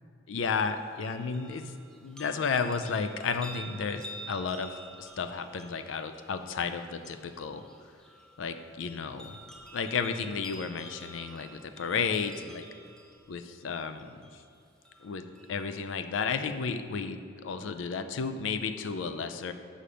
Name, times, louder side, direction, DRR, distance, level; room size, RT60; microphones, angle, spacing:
voice 1, 0.3-1.6 2.0-7.6 8.4-9.4 9.7-12.6 13.3-14.1 15.0-19.5, left 5 dB, 85° left, 9 dB, 0.4 m, -33 dB
sound 1, 0.6-15.6 16.1-16.2, right 1 dB, 5° left, 0.5 m, -50 dB
5.6 x 5.1 x 5.0 m, 2.4 s
head